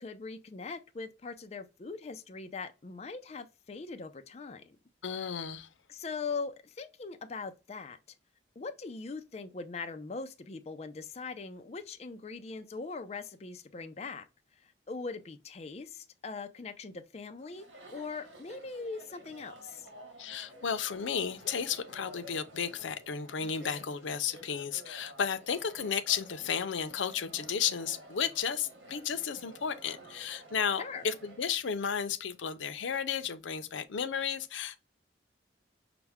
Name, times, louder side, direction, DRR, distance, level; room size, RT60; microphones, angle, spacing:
voice 1, 0.0-4.8 5.9-8.2 8.6-14.3 14.5-19.9 30.8-31.1, left 4 dB, 35° left, 0.4 m, -41 dB
voice 2, 5.0-5.7 20.2-34.8, left 7 dB, 85° left, 0.5 m, -33 dB
Chatter, 17.4-31.5, right 1 dB, 80° right, 1.5 m, -52 dB
5.8 x 2.1 x 3.4 m
head